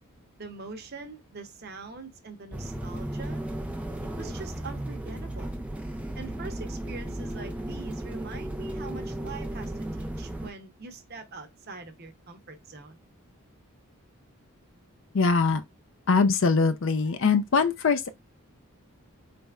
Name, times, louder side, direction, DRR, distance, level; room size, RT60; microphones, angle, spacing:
voice 1, 0.4-3.4 4.2-5.6 6.1-9.7 10.0-13.0, right 4 dB, 45° right, 0.7 m, -43 dB
sound 1, 2.5-10.5, right 1 dB, 5° right, 0.3 m, -35 dB
voice 2, 15.1-15.6 16.1-18.1, left 4 dB, 60° left, 0.5 m, -22 dB
4.1 x 3.4 x 2.3 m
head